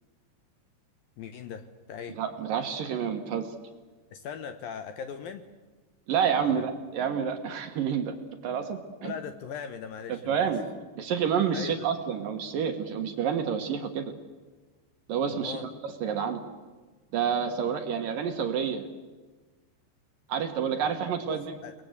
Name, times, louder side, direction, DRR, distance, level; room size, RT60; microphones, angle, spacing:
voice 1, 1.2-2.2 4.1-5.5 6.4-6.6 9.0-10.5 11.5-11.9 15.3-15.7 20.8-20.9 21.3-21.7, left 7 dB, 70° left, 8 dB, 2.4 m, -39 dB
voice 2, 2.2-3.5 6.1-8.1 8.4-9.1 10.1-10.7 11.0-14.1 15.1-15.7 16.0-16.4 17.1-18.9 20.3-21.5, right 7 dB, 65° right, 6 dB, 2.6 m, -29 dB
30.0 x 20.5 x 8.1 m, 1.3 s
omnidirectional pair, 5.1 m